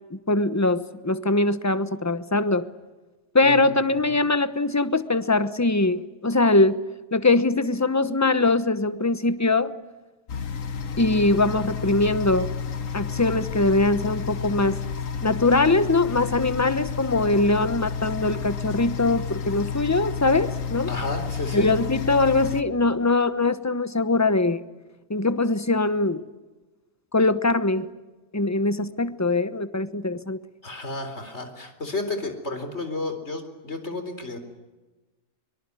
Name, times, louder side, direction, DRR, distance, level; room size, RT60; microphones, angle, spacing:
voice 1, 0.1-2.7 3.3-6.8 7.1-9.7 11.0-12.5 12.9-14.8 15.2-20.9 21.5-24.6 25.1-26.3 27.1-27.9 28.3-30.4, left 2 dB, 15° left, 13 dB, 0.9 m, -22 dB
voice 2, 3.4-3.8 4.1-4.2 20.9-21.7 30.6-34.4, left 2 dB, 55° left, 8 dB, 4.3 m, -32 dB
sound 1, 10.3-22.6, left 6 dB, 75° left, 1.6 m, -31 dB
24.0 x 23.0 x 9.8 m, 1.2 s
omnidirectional pair, 1.4 m